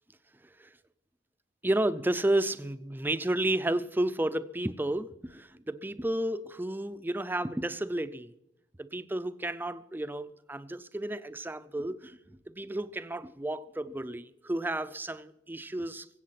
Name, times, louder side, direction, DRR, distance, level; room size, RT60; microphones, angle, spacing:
voice 1, 1.6-8.3 8.8-12.2 12.5-16.1, right 1 dB, 10° right, 0.5 m, -32 dB
22.5 x 8.3 x 5.9 m
head